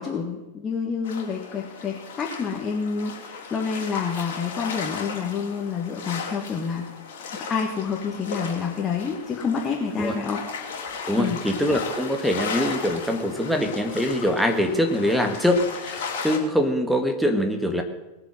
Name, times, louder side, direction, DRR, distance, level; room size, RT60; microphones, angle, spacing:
voice 1, 0.0-6.9 7.3-10.4 11.1-11.4, left 6 dB, 20° left, -1 dB, 2.0 m, -28 dB
sound 1, 1.0-16.4, left 5 dB, 55° left, 3.0 m, -36 dB
voice 2, 11.1-17.8, equal, ahead, 4 dB, 1.9 m, -23 dB
20.0 x 7.0 x 7.7 m, 1.0 s
figure-of-eight pair, 90°, 0 cm